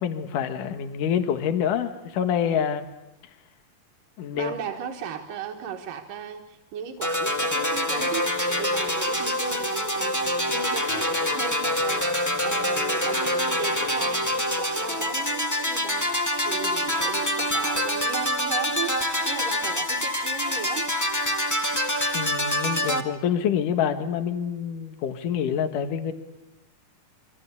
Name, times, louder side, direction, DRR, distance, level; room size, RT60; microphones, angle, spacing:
voice 1, 0.0-2.9 4.2-4.5 22.1-26.1, left 8 dB, 75° left, 9 dB, 3.0 m, -26 dB
voice 2, 4.3-20.9, right 7 dB, 80° right, 3 dB, 3.3 m, -36 dB
sound 1, 7.0-23.0, left 1 dB, 10° left, 1.0 m, -26 dB
28.0 x 24.5 x 8.3 m, 0.93 s
omnidirectional pair, 3.8 m